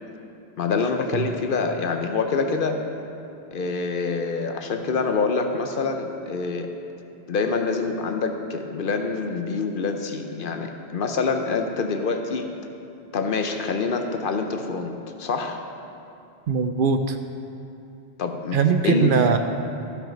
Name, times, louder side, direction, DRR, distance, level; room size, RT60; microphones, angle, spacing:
voice 1, 0.6-2.8 3.5-6.7 7.3-12.5 13.1-15.6 18.2-19.1, left 4 dB, 60° left, 5 dB, 0.8 m, -26 dB
voice 2, 16.5-17.2 18.5-19.4, right 6 dB, 60° right, 7 dB, 0.7 m, -20 dB
14.0 x 6.2 x 5.1 m, 2.7 s
omnidirectional pair, 1.1 m